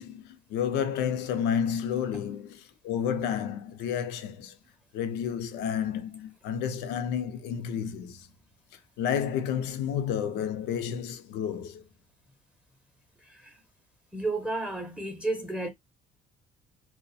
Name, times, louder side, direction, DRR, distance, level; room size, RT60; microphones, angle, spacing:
voice 1, 0.0-4.6 4.9-8.3 9.0-11.8, left 8 dB, 90° left, 0.5 m, -31 dB
voice 2, 13.2-13.6 14.1-15.7, right 2 dB, 5° right, 0.5 m, -32 dB
2.3 x 2.1 x 2.6 m
cardioid pair, 110°, 17 cm